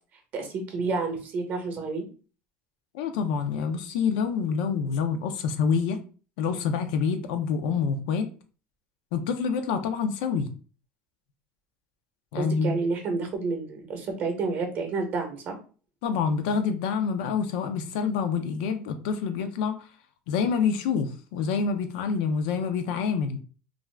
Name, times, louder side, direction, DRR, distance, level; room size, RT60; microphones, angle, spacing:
voice 1, 0.3-2.1 12.3-15.6, right 4 dB, 40° right, 4 dB, 0.7 m, -30 dB
voice 2, 2.9-6.0 6.4-8.3 9.1-10.5 12.3-12.7 16.0-19.7 20.3-23.4, left 6 dB, 90° left, 7 dB, 0.5 m, -27 dB
2.5 x 2.3 x 3.2 m, 0.37 s
cardioid pair, 145°, 5 cm